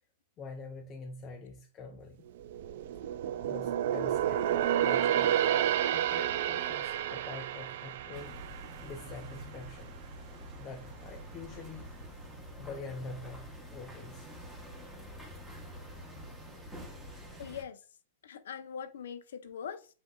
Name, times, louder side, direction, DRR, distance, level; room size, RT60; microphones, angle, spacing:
voice 1, 0.4-2.2 3.4-5.4 5.9-8.3 8.8-9.9 10.6-11.9 12.6-14.3, left 4 dB, 20° left, 0.6 m, -45 dB
sound 1, 2.3-9.8 10.2-10.4 11.0-11.7 12.0-12.1, right 11 dB, 55° right, 0.3 m, -31 dB
sound 2, 8.1-17.6, equal, 5° right, 1.0 m, -47 dB
voice 2, 17.4-17.8 18.2-19.9, left 7 dB, 80° left, 0.7 m, -42 dB
8.0 x 2.7 x 2.3 m
supercardioid pair, 160°, 0 cm